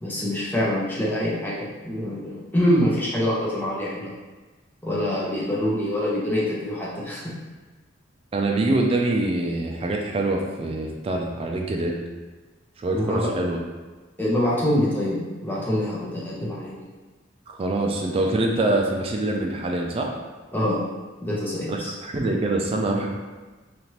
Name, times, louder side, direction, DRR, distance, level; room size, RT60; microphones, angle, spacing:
voice 1, 0.0-4.1 4.8-7.3 12.9-13.3 14.2-16.9 20.5-20.8 21.2-21.9, left 1 dB, 10° left, -6 dB, 0.7 m, -25 dB
voice 2, 8.3-12.0 12.8-13.6 17.5-20.1 21.7-23.1, right 2 dB, 30° right, 1 dB, 0.3 m, -24 dB
2.9 x 2.5 x 3.1 m, 1.2 s
head